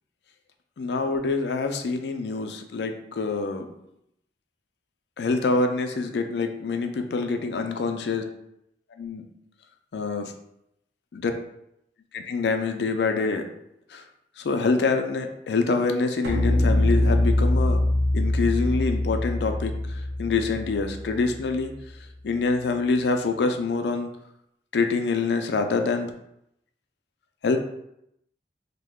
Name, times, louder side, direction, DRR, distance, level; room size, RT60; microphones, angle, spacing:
voice 1, 0.8-3.7 5.2-8.2 9.0-9.2 9.9-10.3 11.1-11.3 12.1-13.4 13.9-14.0 14.4-17.8 18.1-19.7 20.2-21.7 22.2-24.1 24.7-26.1 27.4-27.6, left 4 dB, 70° left, 5 dB, 0.4 m, -25 dB
sound 1, 16.2-21.5, left 1 dB, 70° right, 0.6 m, -23 dB
3.1 x 2.1 x 3.5 m, 0.79 s
head